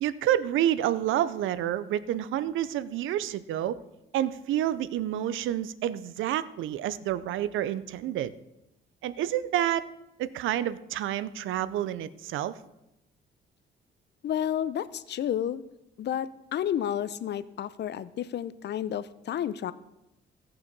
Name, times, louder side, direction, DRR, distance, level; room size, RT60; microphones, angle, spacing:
voice 1, 0.0-3.8 4.1-8.3 9.0-9.8 10.2-12.5, right 12 dB, 80° right, 17 dB, 0.6 m, -29 dB
voice 2, 14.2-15.6 16.0-19.7, left 10 dB, 60° left, 16 dB, 0.6 m, -31 dB
16.5 x 5.7 x 5.3 m, 0.89 s
cardioid pair, 90°, 20 cm